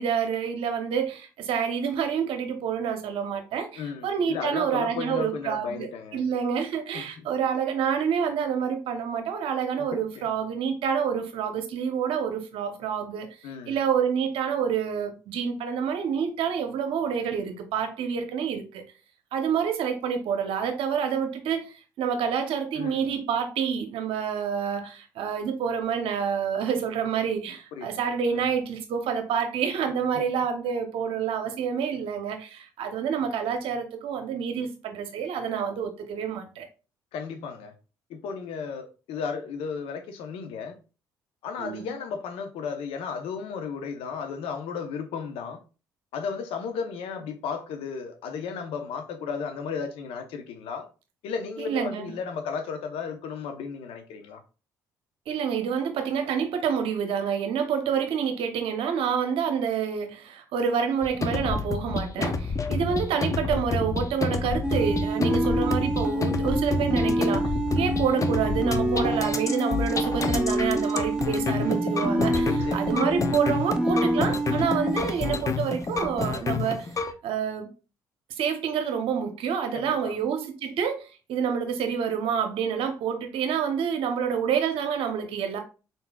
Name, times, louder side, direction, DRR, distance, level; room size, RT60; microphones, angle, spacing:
voice 1, 0.0-13.3 13.7-18.8 19.3-36.7 41.6-41.9 51.6-52.1 55.3-67.5 67.7-76.9 77.2-77.7 78.4-85.6, right 7 dB, 70° right, 0.8 m, -28 dB
voice 2, 3.7-6.2 6.9-7.3 9.8-9.9 10.1-10.3 13.4-13.8 22.7-23.1 27.7-28.5 29.8-30.2 37.1-37.7 38.1-40.8 41.4-45.6 46.1-50.9 51.2-54.4 72.4-73.4 79.7-80.1, left 6 dB, 75° left, 0.8 m, -34 dB
sound 1, 61.0-77.1, left 4 dB, 35° left, 0.6 m, -29 dB
sound 2, 64.6-75.0, right 1 dB, 5° right, 0.6 m, -27 dB
4.0 x 3.9 x 2.3 m
hypercardioid pair, 55°, 10 cm